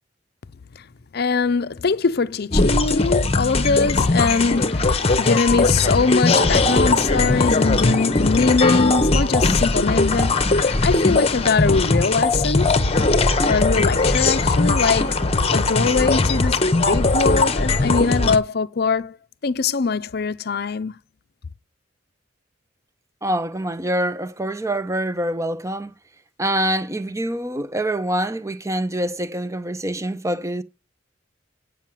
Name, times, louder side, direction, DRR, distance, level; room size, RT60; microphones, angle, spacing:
voice 1, 1.1-12.8 13.4-15.2 15.5-19.2 19.4-21.0, left 4 dB, 55° left, 0.6 m, -22 dB
sound 1, 2.5-18.4, left 3 dB, 30° left, 0.9 m, -19 dB
voice 2, 23.2-25.9 26.4-30.6, right 1 dB, 15° right, 0.7 m, -25 dB
9.1 x 5.7 x 7.6 m
head